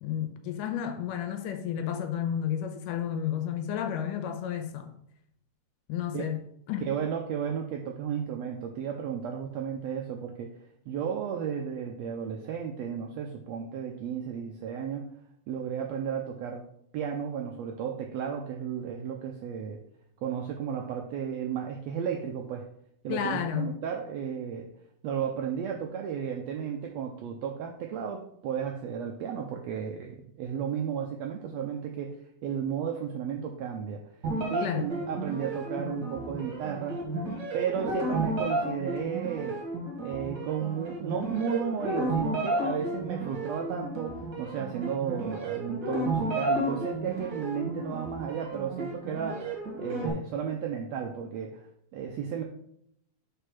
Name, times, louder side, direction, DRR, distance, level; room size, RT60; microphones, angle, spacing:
voice 1, 0.0-4.9 5.9-6.4 6.7-6.9 23.1-23.8 34.6-34.9, left 9 dB, 85° left, 2.4 m, -31 dB
voice 2, 6.8-10.5 10.9-15.1 15.5-16.6 16.9-19.8 20.2-22.7 23.0-24.7 25.0-34.0 34.5-37.0 37.5-39.6 40.0-51.7 51.9-52.4, right 7 dB, 85° right, 1.5 m, -33 dB
sound 1, 34.2-50.1, right 2 dB, 40° right, 1.8 m, -33 dB
5.2 x 4.5 x 5.8 m
omnidirectional pair, 3.7 m